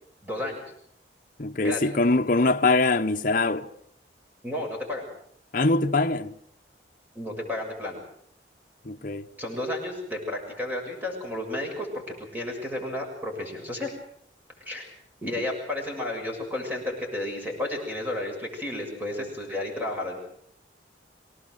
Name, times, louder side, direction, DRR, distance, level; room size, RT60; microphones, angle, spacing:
voice 1, 0.2-0.6 1.6-1.8 4.4-5.1 7.1-8.0 9.4-11.9 12.2-13.9 14.6-14.9 15.2-20.2, left 1 dB, 10° right, 6.7 m, -32 dB
voice 2, 1.4-3.7 5.5-6.3 8.8-9.3, left 2 dB, 45° left, 0.9 m, -23 dB
25.0 x 18.0 x 7.8 m
head